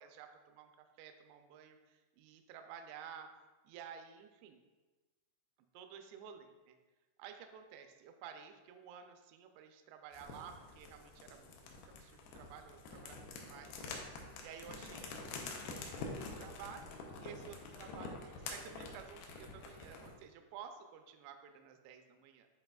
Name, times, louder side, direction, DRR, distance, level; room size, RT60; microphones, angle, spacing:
voice 1, 0.0-3.3 3.6-4.6 5.7-6.8 7.2-14.1 14.4-16.8 17.2-22.5, right 8 dB, 85° right, 6 dB, 2.3 m, -53 dB
sound 1, 10.1-20.2, left 3 dB, 85° left, 2.1 m, -47 dB
10.0 x 4.1 x 2.3 m, 1.2 s
omnidirectional pair, 5.2 m